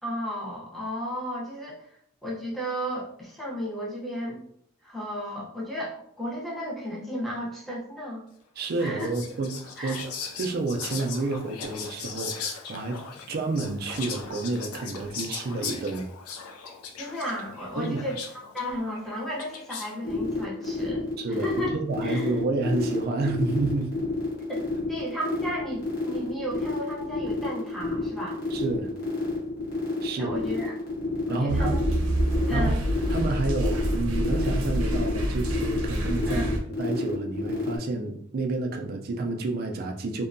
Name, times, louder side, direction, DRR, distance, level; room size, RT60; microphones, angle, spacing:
voice 1, 0.0-1.9 2.2-4.4 4.8-8.2 8.8-9.1 9.8-10.0 17.0-21.1 21.4-21.8 22.0-22.3 24.5-24.6 24.9-28.4 30.2-30.8 31.3-31.8 32.5-32.8 36.3-36.5, equal, ahead, -5 dB, 0.6 m, -34 dB
voice 2, 8.6-13.0 13.3-16.1 17.8-18.1 21.2-24.0 28.5-28.9 30.0-30.4 31.3-31.8 32.5-32.7 33.1-40.3, right 3 dB, 45° right, 4 dB, 0.3 m, -29 dB
Whispering, 8.7-20.0, left 6 dB, 85° left, 0.4 m, -39 dB
sound 1, 20.0-37.8, left 1 dB, 50° left, 1.0 m, -32 dB
sound 2, 31.5-36.6, right 1 dB, 90° right, 0.6 m, -27 dB
2.7 x 2.1 x 2.5 m, 0.68 s
head